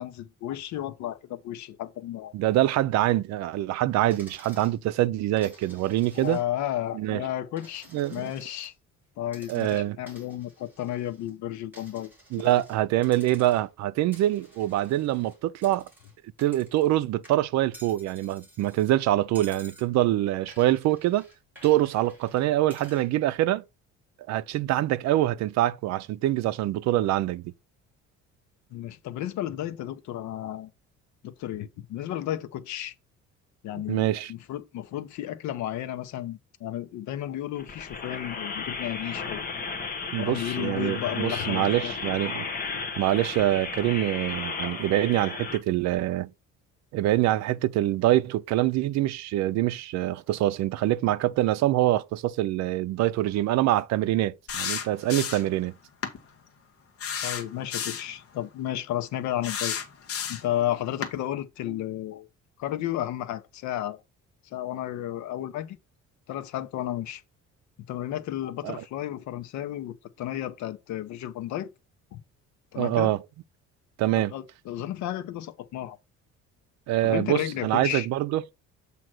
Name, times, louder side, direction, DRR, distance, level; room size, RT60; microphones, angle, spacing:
voice 1, 0.0-2.3 6.1-8.7 9.2-12.1 12.4-12.5 28.7-30.7 31.2-32.9 33.6-39.4 40.2-41.9 57.2-59.8 60.3-62.3 62.6-64.0 64.5-65.8 66.3-67.2 67.9-71.7 72.1-72.2 72.7-73.1 74.2-76.0 77.0-78.1, left 12 dB, 70° left, 0.8 m, -33 dB
voice 2, 2.3-6.4 6.9-7.2 7.9-8.3 9.5-10.0 12.3-15.9 16.4-21.3 21.6-23.6 24.3-27.5 33.9-34.3 40.1-42.5 43.0-46.3 46.9-55.7 68.6-68.8 72.8-73.2 74.0-74.3 76.9-78.4, right 14 dB, 65° right, 0.5 m, -25 dB
Coin (dropping), 4.1-4.8 5.4-6.7 7.0-8.7 9.3-11.3 11.7-12.8 13.0-13.8 14.1-17.0 17.2-18.9 19.3-19.9 20.5-23.1, right 1 dB, 5° right, 2.3 m, -52 dB
sound 1, 37.6-45.6, left 4 dB, 30° left, 0.9 m, -34 dB
sound 2, 54.5-55.6 56.0-56.2 57.0-58.1 59.4-60.5 61.0-61.2, left 7 dB, 50° left, 1.1 m, -32 dB
7.6 x 2.9 x 6.1 m
cardioid pair, 180°, 30 cm